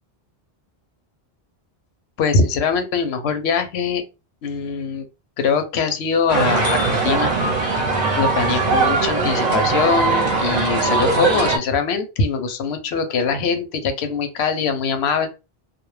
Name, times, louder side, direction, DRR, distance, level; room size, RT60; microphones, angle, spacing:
voice 1, 2.2-4.0 4.4-5.0 5.4-7.3 8.2-15.3, left 5 dB, 85° left, 7 dB, 0.8 m, -22 dB
sound 1, 6.3-11.6, right 3 dB, 50° right, 0.6 m, -20 dB
2.1 x 2.0 x 3.1 m, 0.29 s
omnidirectional pair, 1.0 m